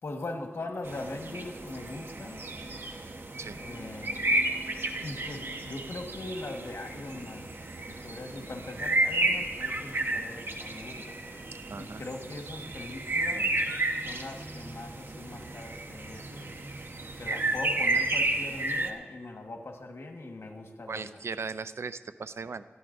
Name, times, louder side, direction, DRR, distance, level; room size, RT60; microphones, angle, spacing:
voice 1, 0.0-2.5 3.5-4.3 5.0-7.6 7.9-11.3 11.7-13.7 14.0-16.6 17.2-21.3, left 2 dB, 80° left, 1.4 m, -41 dB
sound 1, 0.8-18.9, right 2 dB, 60° right, 1.1 m, -32 dB
voice 2, 11.7-12.0 20.9-22.7, right 4 dB, 80° right, 0.4 m, -37 dB
19.5 x 14.5 x 2.6 m
wide cardioid pair, 50°, 4 cm